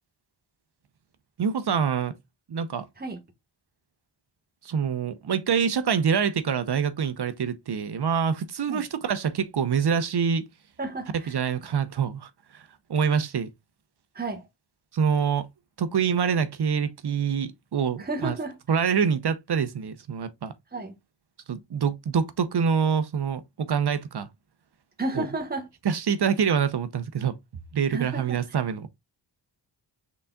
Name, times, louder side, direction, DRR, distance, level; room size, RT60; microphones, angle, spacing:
voice 1, 1.4-2.1 2.5-2.9 4.6-10.4 11.3-12.6 12.9-13.5 14.9-15.5 15.8-18.4 18.7-20.5 21.5-24.3 25.1-25.3 25.8-27.3 27.7-28.9, right 6 dB, 55° right, 0.8 m, -25 dB
voice 2, 10.8-11.3 14.1-14.5 18.0-18.5 20.7-21.0 25.0-25.7 27.9-28.4, right 2 dB, 20° right, 1.4 m, -32 dB
5.3 x 4.0 x 2.3 m
cardioid pair, 50°, 48 cm